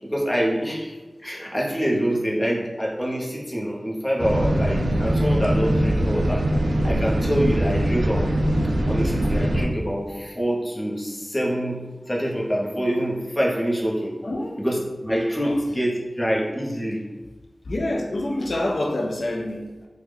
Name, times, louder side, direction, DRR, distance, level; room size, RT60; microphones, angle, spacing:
voice 1, 0.0-6.5 6.8-8.3 8.9-14.1 14.6-17.0, equal, 20° left, -3 dB, 0.7 m, -25 dB
sound 1, 4.2-9.7, right 1 dB, 75° right, 0.3 m, -22 dB
voice 2, 14.2-14.6 15.4-15.6 17.7-19.9, left 1 dB, 80° left, 0 dB, 0.3 m, -27 dB
3.3 x 2.1 x 3.3 m, 1.2 s
wide cardioid pair, 55°, 0 cm